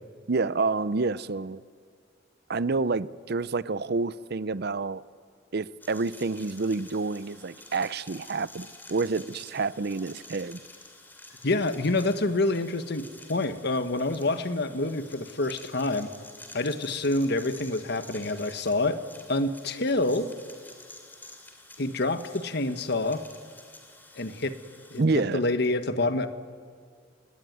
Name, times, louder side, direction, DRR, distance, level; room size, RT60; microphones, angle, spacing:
voice 1, 0.3-1.6 2.5-5.0 5.5-10.6 25.0-25.4, right 3 dB, 60° right, 0.6 m, -28 dB
sound 1, 5.8-25.0, left 2 dB, 10° left, 3.4 m, -49 dB
voice 2, 11.4-16.1 16.5-19.0 19.3-20.3 21.8-23.2 24.2-24.6 24.9-26.3, left 2 dB, 60° left, 1.4 m, -27 dB
28.5 x 20.5 x 9.5 m
head